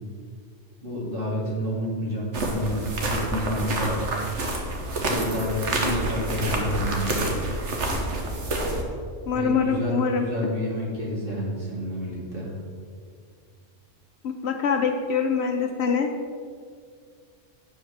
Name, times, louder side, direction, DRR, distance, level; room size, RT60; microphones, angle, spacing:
voice 1, 0.8-4.0 5.0-7.4 9.3-12.5, equal, 45° right, -4 dB, 2.1 m, -29 dB
sound 1, 2.3-8.8, right 1 dB, 65° right, 1.4 m, -28 dB
voice 2, 9.3-10.3 14.2-16.1, left 6 dB, 65° left, 5 dB, 0.9 m, -24 dB
7.9 x 5.1 x 6.3 m, 2.1 s
omnidirectional pair, 1.3 m